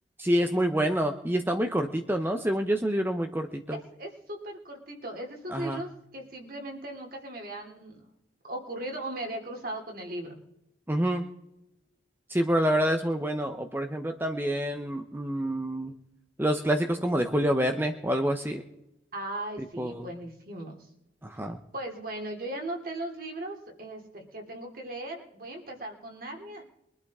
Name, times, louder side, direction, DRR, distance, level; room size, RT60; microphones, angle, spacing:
voice 1, 0.2-3.8 5.5-5.8 10.9-11.2 12.3-15.9 16.4-18.6 19.8-20.1 21.2-21.6, equal, 10° right, 5 dB, 0.8 m, -27 dB
voice 2, 3.7-8.0 8.4-10.4 19.1-20.9 21.7-26.7, right 1 dB, 50° right, 1 dB, 2.9 m, -38 dB
23.0 x 12.0 x 3.7 m, 0.90 s
head